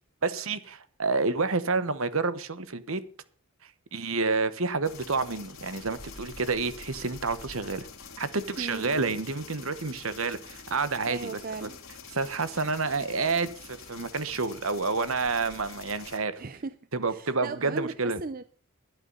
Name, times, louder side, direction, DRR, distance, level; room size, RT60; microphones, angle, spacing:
voice 1, 0.2-3.0 3.9-7.9 8.2-11.3 12.1-16.4 16.9-18.2, right 4 dB, 70° right, 1.2 m, -29 dB
sound 1, 4.8-16.2, left 5 dB, 65° left, 2.4 m, -46 dB
voice 2, 8.6-9.0 11.1-11.8 16.4-16.8 17.1-18.4, right 3 dB, 40° right, 0.5 m, -37 dB
12.0 x 11.5 x 5.5 m
head